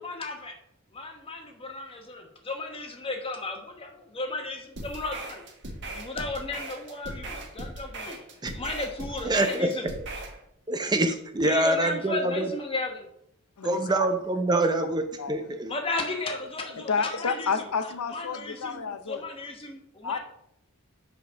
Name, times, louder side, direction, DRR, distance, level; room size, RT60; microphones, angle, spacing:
voice 1, 0.0-0.5 0.9-5.4 5.9-8.2 8.5-9.9 11.4-13.1 15.7-17.5 18.1-18.8 19.1-20.2, left 2 dB, 25° left, 3 dB, 1.1 m, -34 dB
sound 1, 4.8-10.4, right 2 dB, 50° right, 1.5 m, -39 dB
voice 2, 9.2-9.7 10.0-10.1 10.7-12.5 13.6-15.0 15.3-15.7, right 2 dB, 20° right, 7 dB, 0.5 m, -25 dB
voice 3, 13.6-14.1 15.2-15.6 16.4-16.5 16.8-19.3 20.0-20.2, left 5 dB, 85° left, 10 dB, 0.6 m, -31 dB
5.2 x 5.2 x 6.1 m, 0.74 s
head